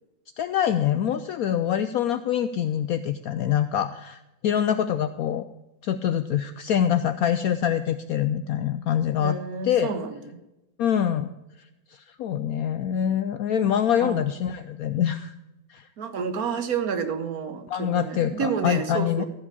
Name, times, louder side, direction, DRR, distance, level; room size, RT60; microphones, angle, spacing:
voice 1, 0.4-5.4 5.8-9.4 9.6-9.9 10.8-11.3 12.2-15.3 15.7-15.9 17.7-19.2, left 9 dB, 75° left, 11 dB, 0.8 m, -25 dB
voice 2, 9.2-10.4 14.0-14.3 16.0-19.2, right 6 dB, 60° right, 9 dB, 1.3 m, -30 dB
14.5 x 5.0 x 8.2 m, 0.96 s
omnidirectional pair, 2.0 m